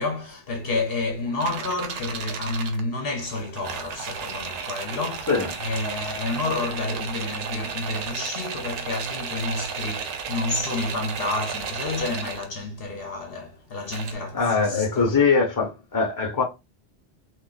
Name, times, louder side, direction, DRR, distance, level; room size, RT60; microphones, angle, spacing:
voice 1, 0.0-5.3 5.6-15.1, left 2 dB, 60° left, 0.8 m, -30 dB
sound 1, 1.4-2.8 3.3-12.5 13.9-14.1, right 6 dB, 85° right, 0.9 m, -33 dB
voice 2, 14.3-16.4, left 5 dB, 20° left, 0.8 m, -22 dB
3.6 x 2.4 x 2.3 m
omnidirectional pair, 1.2 m